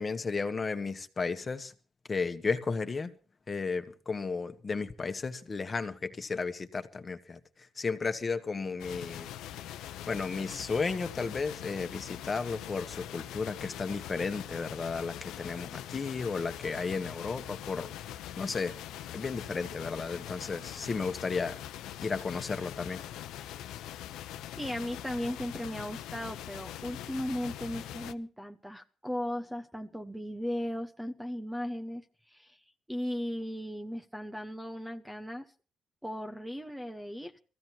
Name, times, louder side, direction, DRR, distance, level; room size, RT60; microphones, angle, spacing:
voice 1, 0.0-1.7 2.1-3.1 3.5-9.3 10.1-18.8 19.1-21.6 22.0-23.0, left 4 dB, 30° left, 1.5 m, -34 dB
sound 1, 8.8-28.1, left 12 dB, 90° left, 0.8 m, -42 dB
voice 2, 24.6-32.6 32.9-35.4 36.0-37.4, equal, 5° right, 1.0 m, -37 dB
23.0 x 15.5 x 2.9 m
cardioid pair, 90°, 0 cm